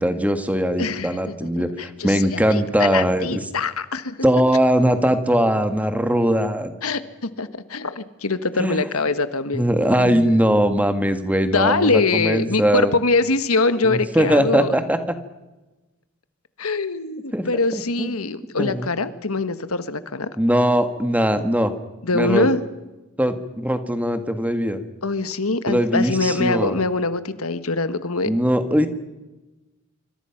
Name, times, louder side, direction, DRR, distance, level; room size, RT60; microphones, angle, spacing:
voice 1, 0.0-3.4 4.2-6.7 8.6-8.8 9.5-12.9 13.8-15.0 17.3-17.5 17.7-18.1 18.6-18.9 20.4-21.7 22.1-22.5 23.2-24.8 25.7-26.8 28.2-28.9, equal, 5° right, 9 dB, 1.6 m, -20 dB
voice 2, 0.8-1.3 1.8-4.2 6.8-10.4 11.5-14.7 16.6-20.3 22.0-22.6 25.0-28.3, left 3 dB, 85° left, 12 dB, 1.5 m, -23 dB
26.0 x 25.5 x 5.9 m, 1.1 s
head